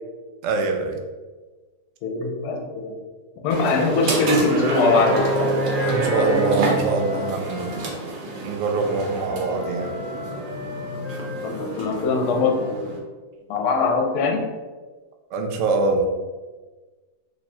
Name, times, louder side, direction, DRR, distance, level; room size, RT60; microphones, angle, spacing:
voice 1, 0.4-1.0 5.8-7.9 8.4-10.0 15.3-16.1, right 3 dB, 70° right, 3 dB, 0.8 m, -24 dB
voice 2, 2.0-3.0 3.4-5.7 11.4-13.0 13.5-14.5, left 3 dB, 70° left, 1 dB, 1.1 m, -22 dB
sound 1, 3.5-13.0, right 2 dB, 90° right, 1.4 m, -27 dB
Wind instrument woodwind instrument, 3.7-7.8 8.8-12.8, left 3 dB, 35° left, 0.8 m, -36 dB
3.2 x 2.3 x 4.2 m, 1.3 s
omnidirectional pair, 1.7 m